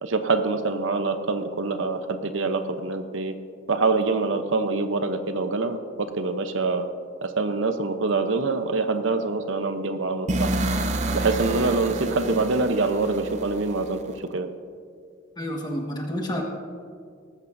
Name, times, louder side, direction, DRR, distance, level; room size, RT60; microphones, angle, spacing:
voice 1, 0.0-3.3 3.7-6.9 7.2-10.5 11.1-14.0 14.3-14.5, right 3 dB, 75° right, 8 dB, 0.9 m, -25 dB
sound 1, 10.3-14.2, right 2 dB, 35° right, 0.6 m, -29 dB
voice 2, 15.4-16.4, equal, 20° left, 0 dB, 1.6 m, -29 dB
18.5 x 14.5 x 2.7 m, 2.1 s
head